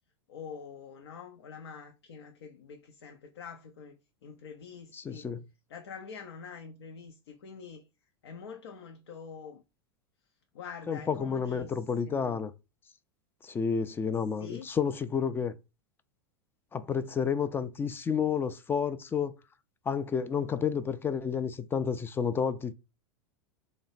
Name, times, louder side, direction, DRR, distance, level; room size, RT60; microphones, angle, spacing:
voice 1, 0.3-5.3 5.7-7.9 8.2-9.6 10.5-12.4 14.4-14.7, left 6 dB, 75° left, 0.5 m, -46 dB
voice 2, 4.9-5.4 10.9-12.5 13.4-15.5 16.7-19.3 19.9-22.7, left 6 dB, 15° left, 0.3 m, -30 dB
3.0 x 2.1 x 4.0 m
hypercardioid pair, 95°, 14 cm